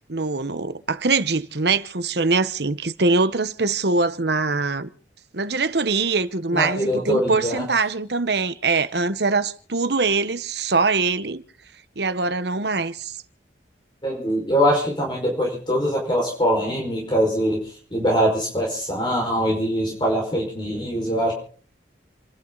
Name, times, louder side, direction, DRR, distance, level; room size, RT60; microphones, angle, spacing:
voice 1, 0.1-4.9 5.3-11.4 12.0-13.2, right 3 dB, 60° right, 1.1 m, -23 dB
voice 2, 6.5-7.6 14.0-21.3, equal, 25° left, 5.1 m, -23 dB
29.5 x 12.0 x 4.0 m
head